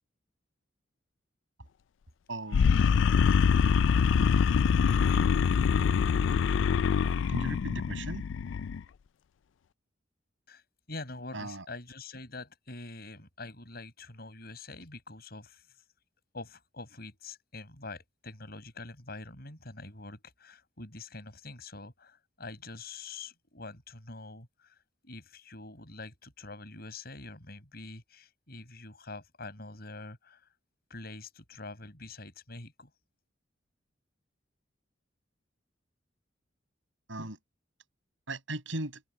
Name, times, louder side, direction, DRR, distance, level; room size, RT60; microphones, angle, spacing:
voice 1, 2.3-2.7 7.3-8.2 11.3-11.6 37.1-37.4 38.3-39.0, right 2 dB, 85° right, 6.0 m, -37 dB
sound 1, 2.5-8.8, left 6 dB, 75° left, 0.4 m, -24 dB
voice 2, 10.9-15.6 16.3-24.8 25.0-30.5 30.9-32.9, left 3 dB, 55° left, 7.2 m, -45 dB
head